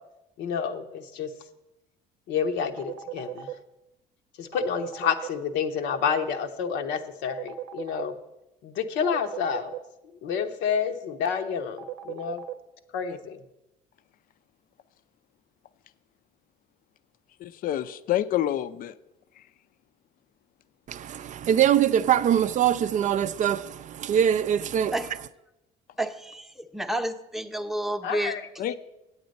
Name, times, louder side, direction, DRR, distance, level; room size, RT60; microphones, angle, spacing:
voice 1, 0.4-1.3 2.3-3.5 4.4-8.1 8.6-9.7 10.2-12.4 12.9-13.4 28.0-28.4 28.7-28.8, left 7 dB, 80° left, 0.8 m, -29 dB
sound 1, 2.8-3.5 4.5-5.3 7.3-8.0 9.0-9.8 11.8-12.5, right 13 dB, 80° right, 0.7 m, -36 dB
voice 2, 17.4-18.9 28.6-28.7, left 12 dB, 50° left, 0.5 m, -27 dB
voice 3, 20.9-24.9, right 9 dB, 45° right, 0.4 m, -23 dB
voice 4, 26.0-28.4, right 1 dB, ahead, 0.7 m, -30 dB
8.5 x 8.0 x 5.2 m
cardioid pair, 100°, 18 cm